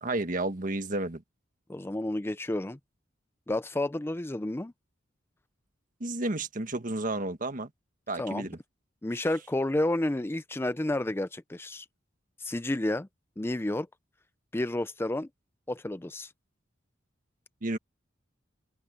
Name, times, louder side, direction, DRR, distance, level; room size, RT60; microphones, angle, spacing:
voice 1, 0.0-1.2 6.0-7.7 8.1-8.6 17.6-17.8, right 2 dB, 45° right, 1.5 m, -31 dB
voice 2, 1.7-2.8 3.5-4.7 8.2-8.5 9.0-11.9 12.4-13.1 13.4-13.9 14.5-15.3 15.7-16.3, left 1 dB, 15° left, 0.5 m, -30 dB
open air
head